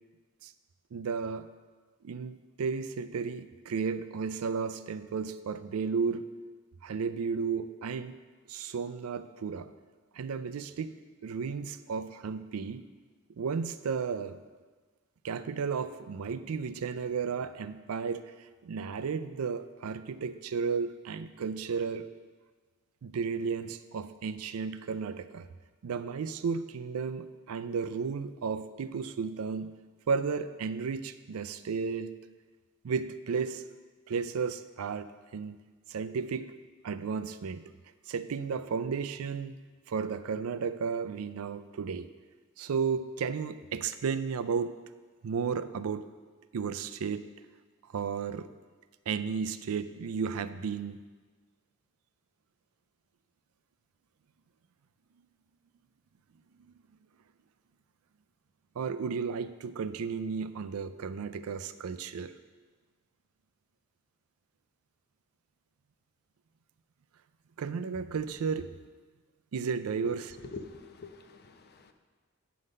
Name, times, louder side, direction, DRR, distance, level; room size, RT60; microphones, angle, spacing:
voice 1, 0.9-1.5 2.0-6.3 6.8-8.2 8.5-9.7 10.1-11.0 11.2-12.8 13.4-14.4 15.2-22.1 23.0-25.5 25.8-29.7 30.1-32.1 32.8-33.6 34.1-35.6 35.9-36.6 36.8-37.6 38.1-39.5 39.9-42.1 42.6-44.7 45.2-46.1 46.5-47.3 47.9-48.5 49.1-51.0 58.8-62.3 67.6-68.7 69.5-70.2, right 5 dB, 80° right, 11 dB, 0.4 m, -33 dB
voice 2, 70.0-71.9, left 3 dB, 50° left, 7 dB, 0.6 m, -45 dB
9.3 x 3.9 x 6.4 m, 1.4 s
head